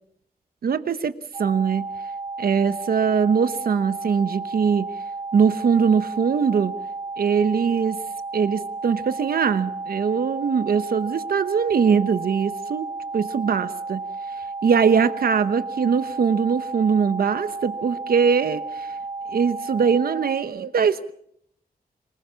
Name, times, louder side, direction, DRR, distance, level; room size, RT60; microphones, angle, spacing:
voice 1, 0.6-1.1 1.4-1.9 2.4-4.9 5.3-6.7 7.2-8.0 8.3-14.0 14.6-18.9 19.3-21.1, right 6 dB, 90° right, 12 dB, 1.0 m, -21 dB
sound 1, 1.3-20.4, right 3 dB, 40° right, 2.2 m, -33 dB
25.5 x 20.0 x 5.8 m, 0.71 s
wide cardioid pair, 160°, 15 cm